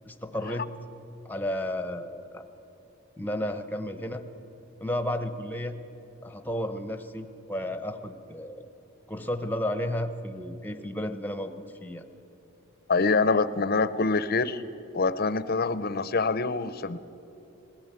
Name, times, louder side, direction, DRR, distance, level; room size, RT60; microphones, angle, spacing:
voice 1, 0.0-0.7 1.2-2.5 3.2-4.2 4.8-5.8 6.2-8.7 9.1-11.5 11.8-12.1, left 1 dB, 10° left, 9 dB, 0.9 m, -32 dB
voice 2, 12.9-14.6 14.9-17.0, left 4 dB, 45° left, 14 dB, 0.7 m, -25 dB
20.0 x 15.5 x 9.0 m, 3.0 s
head